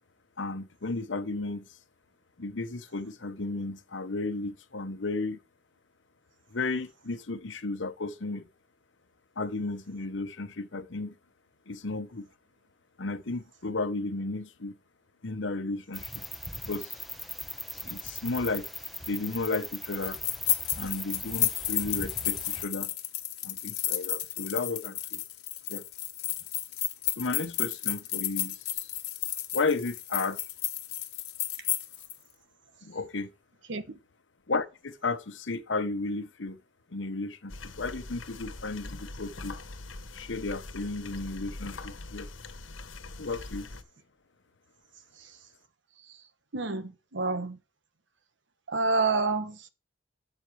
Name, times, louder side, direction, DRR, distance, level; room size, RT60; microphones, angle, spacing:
voice 1, 0.4-1.7 2.4-5.4 6.5-8.5 9.4-11.1 11.7-12.3 13.0-14.7 15.2-16.2 16.7-16.9 17.8-18.7 19.1-20.2 20.7-22.9 23.4-25.2 25.7-25.8 27.2-28.9 29.5-30.4 32.8-33.3 34.5-36.6 36.9-39.6 40.1-42.3 43.2-43.7, left 3 dB, 75° left, 1.0 m, -33 dB
sound 1, 15.9-22.6, left 1 dB, ahead, 1.0 m, -40 dB
sound 2, 20.0-32.2, left 15 dB, 55° left, 1.5 m, -32 dB
sound 3, 37.5-43.8, left 2 dB, 90° left, 1.3 m, -42 dB
voice 2, 46.5-47.6 48.7-49.7, right 3 dB, 70° right, 1.1 m, -28 dB
12.5 x 7.4 x 3.3 m
head